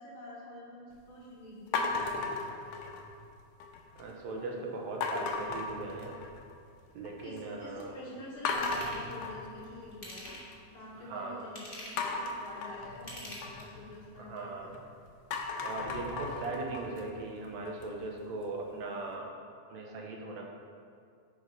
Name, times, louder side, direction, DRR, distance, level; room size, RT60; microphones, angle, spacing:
voice 1, 0.0-2.6 7.2-10.3 10.7-14.7, left 1 dB, 55° left, -5 dB, 1.8 m, -47 dB
sound 1, 1.7-3.2 3.6-4.1 5.0-6.5 6.9-7.4 7.8-7.9 8.4-10.6 12.0-14.8 15.2-18.1, left 3 dB, 75° left, 1.9 m, -36 dB
voice 2, 4.0-6.2 7.0-8.0 11.0-11.4 14.2-14.7 15.6-19.3 19.7-20.4, right 3 dB, 75° right, 0 dB, 2.2 m, -39 dB
Ratchet pawl / Tools, 8.5-9.0 9.9-10.6 11.4-12.1 12.9-13.9 14.4-14.5, left 1 dB, 20° left, 1.5 m, -45 dB
9.4 x 5.1 x 5.4 m, 2.3 s
omnidirectional pair, 3.4 m